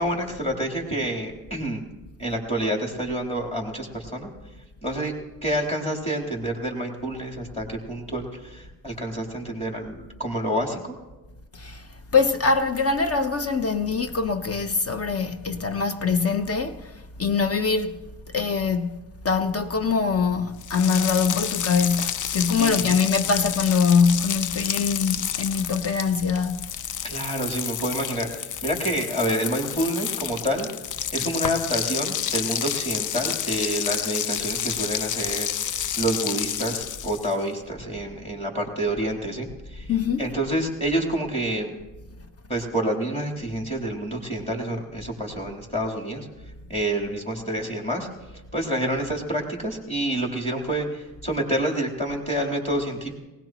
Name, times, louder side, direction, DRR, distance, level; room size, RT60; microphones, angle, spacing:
voice 1, 0.0-1.8 2.2-4.3 4.8-5.1 5.4-10.9 22.6-23.0 27.0-30.7 31.1-39.9 40.2-41.7 42.5-46.3 46.7-48.1 48.5-53.1, right 1 dB, 15° left, 3.6 m, -28 dB
voice 2, 12.1-16.9 17.2-18.0 18.3-19.0 19.2-26.6 39.9-40.3, left 5 dB, 40° left, 0.9 m, -23 dB
sound 1, 20.6-37.4, left 9 dB, 55° left, 0.5 m, -30 dB
19.5 x 18.0 x 3.1 m
cardioid pair, 75°, 36 cm